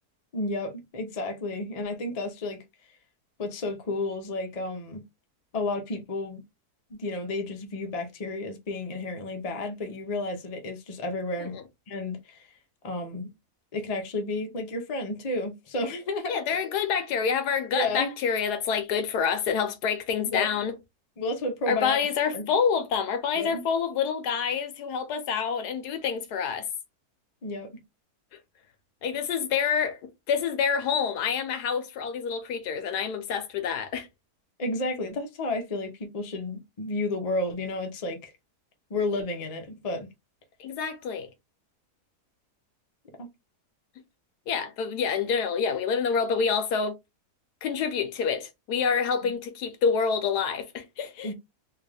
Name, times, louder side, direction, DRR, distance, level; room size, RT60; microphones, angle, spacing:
voice 1, 0.3-2.6 3.4-5.0 5.5-6.4 6.9-11.6 11.9-12.5 12.8-13.3 13.7-16.6 17.7-18.1 20.2-20.5 21.2-22.0 22.3-22.5 23.4-23.6 27.4-27.7 34.6-38.3 38.9-40.1 43.2-43.3 49.2-49.3 51.2-51.3, left 2 dB, 40° left, 0.5 m, -32 dB
voice 2, 16.3-20.8 21.7-26.7 29.0-34.1 40.6-41.3 44.5-47.0 47.6-51.3, left 6 dB, 80° left, 1.3 m, -27 dB
3.5 x 2.4 x 3.3 m
omnidirectional pair, 1.7 m